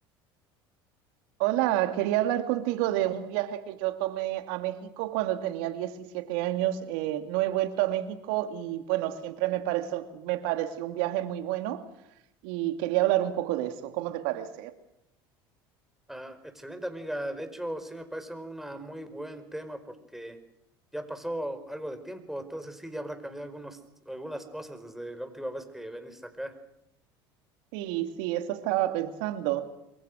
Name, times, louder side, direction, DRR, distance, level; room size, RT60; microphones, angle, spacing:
voice 1, 1.4-11.9 12.4-14.7 27.7-29.7, right 14 dB, 70° right, 2.5 m, -29 dB
voice 2, 16.1-20.4 20.9-23.8 24.0-26.5, right 1 dB, ahead, 5.0 m, -38 dB
27.5 x 23.0 x 6.4 m
hypercardioid pair, 75°, 12 cm